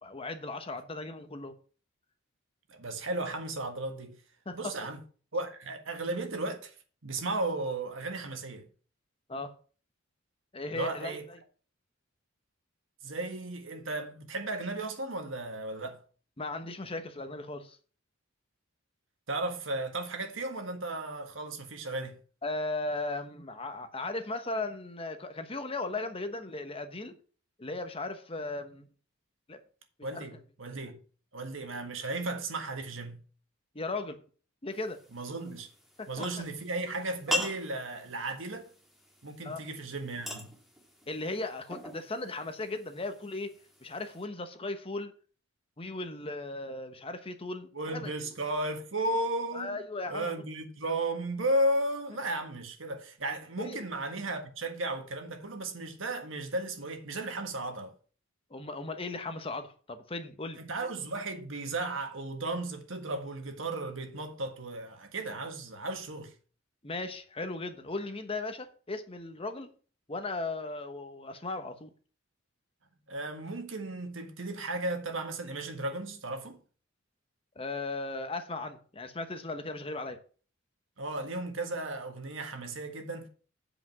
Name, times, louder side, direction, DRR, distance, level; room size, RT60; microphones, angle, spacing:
voice 1, 0.0-1.6 4.5-4.7 9.3-9.5 10.5-11.4 16.4-17.8 22.4-27.2 27.6-28.9 29.5-29.6 30.1-30.2 33.7-34.2 34.6-35.0 36.0-36.1 39.4-39.6 41.1-43.5 43.8-45.1 45.8-48.1 49.5-50.3 53.6-53.8 58.5-60.6 66.8-69.7 70.1-71.9 77.6-80.2, left 2 dB, 30° left, 1.0 m, -37 dB
voice 2, 2.7-4.2 4.5-5.0 5.3-6.7 7.0-8.7 10.7-11.3 13.0-16.0 19.3-22.2 30.0-31.0 31.3-33.2 35.1-35.7 36.1-38.6 39.2-40.5 47.7-49.8 50.1-57.9 60.6-66.3 73.1-76.6 81.0-83.3, right 2 dB, 70° right, 1.7 m, -35 dB
sound 1, 34.7-44.2, left 1 dB, ahead, 1.7 m, -42 dB
8.4 x 5.1 x 6.0 m
head